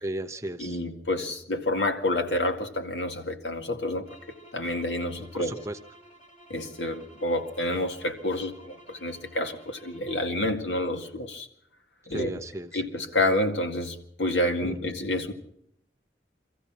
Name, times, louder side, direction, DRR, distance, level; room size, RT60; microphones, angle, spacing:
voice 1, 0.0-0.8 5.3-5.8 12.1-12.7 14.6-15.0, right 1 dB, 15° right, 7 dB, 1.0 m, -35 dB
voice 2, 0.6-5.5 6.5-11.5 12.1-12.3 12.7-15.3, left 1 dB, 90° left, 4 dB, 2.1 m, -29 dB
sound 1, 4.0-10.4, right 1 dB, 35° left, 3.8 m, -54 dB
24.5 x 14.5 x 7.3 m, 0.75 s
head